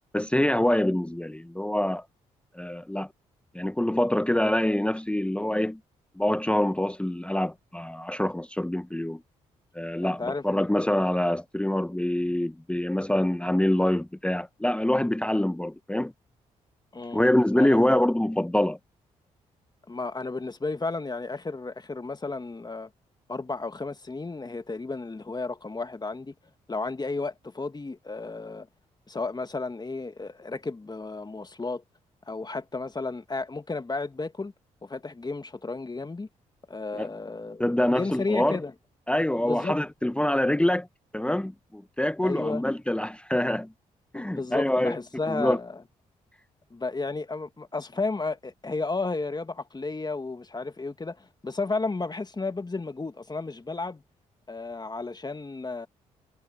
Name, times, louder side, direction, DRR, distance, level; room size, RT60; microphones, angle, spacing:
voice 1, 0.1-2.0 2.5-3.1 3.5-5.8 6.2-9.2 9.7-16.1 17.1-18.8 36.9-37.1 37.6-38.6 39.1-40.9 41.1-43.7 44.1-45.0 45.3-45.6, left 1 dB, 5° left, 1.0 m, -25 dB
voice 2, 10.0-10.6 16.9-17.2 17.6-17.8 19.9-22.9 23.3-26.3 26.7-28.7 29.1-31.8 32.3-34.5 34.8-36.3 36.7-38.7 39.4-39.8 42.2-42.6 44.1-45.8 46.7-54.0 54.5-55.9, left 3 dB, 25° left, 1.9 m, -33 dB
hypercardioid pair, 45°, 16 cm